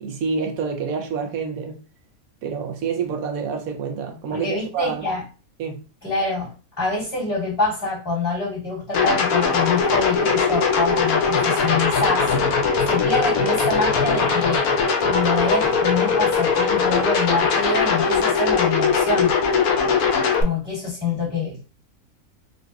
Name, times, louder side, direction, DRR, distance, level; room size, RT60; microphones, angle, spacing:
voice 1, 0.0-1.8 2.4-5.1 5.6-5.8, right 5 dB, 75° right, 1.0 m, -27 dB
voice 2, 4.3-5.2 6.0-14.7 15.0-19.3 20.4-21.7, left 3 dB, 25° left, 1.9 m, -26 dB
sound 1, 8.9-20.4, left 5 dB, 85° left, 1.1 m, -20 dB
3.8 x 2.5 x 2.3 m
omnidirectional pair, 1.5 m